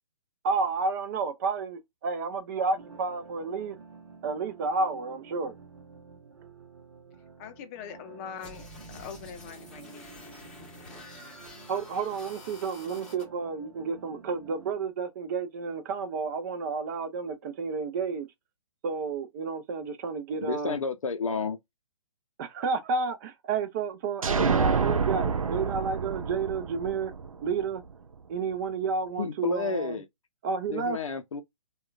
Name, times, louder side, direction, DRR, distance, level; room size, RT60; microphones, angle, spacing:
voice 1, 0.4-3.8 4.2-5.6 11.7-18.3 18.8-20.8 22.4-27.1 27.4-27.8 28.3-30.0 30.4-31.0, right 4 dB, 35° right, 0.5 m, -31 dB
lofi guitar, 2.7-14.7, right 5 dB, 65° right, 0.8 m, -51 dB
voice 2, 7.4-10.2, left 8 dB, 25° left, 0.6 m, -43 dB
sound 1, 8.4-13.2, left 2 dB, 5° left, 0.9 m, -48 dB
voice 3, 20.4-21.6 29.2-30.1 30.7-31.4, left 4 dB, 70° left, 0.6 m, -31 dB
sound 2, 24.2-27.9, right 5 dB, 90° right, 0.4 m, -28 dB
3.6 x 2.3 x 2.3 m
figure-of-eight pair, 130°, 17 cm